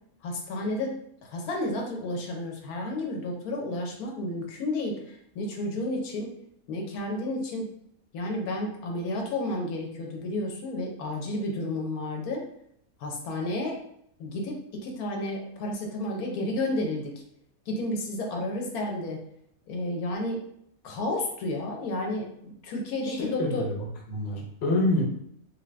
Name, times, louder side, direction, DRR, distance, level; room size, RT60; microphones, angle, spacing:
voice 1, 0.2-0.9 1.2-6.3 6.7-7.7 8.1-12.4 13.0-13.8 14.2-17.1 17.7-19.2 19.7-20.4 20.8-23.7, left 1 dB, 85° left, 1 dB, 1.1 m, -31 dB
voice 2, 23.0-23.7 24.1-25.0, left 2 dB, 55° left, -1 dB, 0.9 m, -27 dB
2.7 x 2.5 x 3.2 m, 0.71 s
omnidirectional pair, 1.6 m